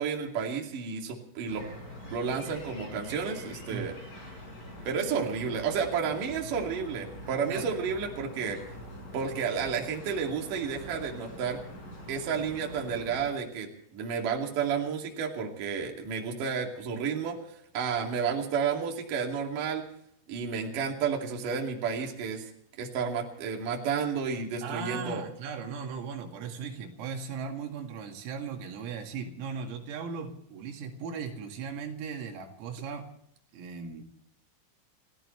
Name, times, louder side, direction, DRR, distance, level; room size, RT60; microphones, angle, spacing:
voice 1, 0.0-1.7 2.1-4.0 4.9-8.6 9.1-11.6 12.1-17.4 17.7-19.8 20.3-22.5 22.8-25.2, right 6 dB, 45° right, 1 dB, 3.5 m, -31 dB
sound 1, 1.5-13.3, left 1 dB, 20° left, 4.7 m, -44 dB
voice 2, 24.6-33.1 33.5-34.0, right 5 dB, 85° right, 3 dB, 4.8 m, -37 dB
30.0 x 15.0 x 3.2 m, 0.69 s
omnidirectional pair, 5.9 m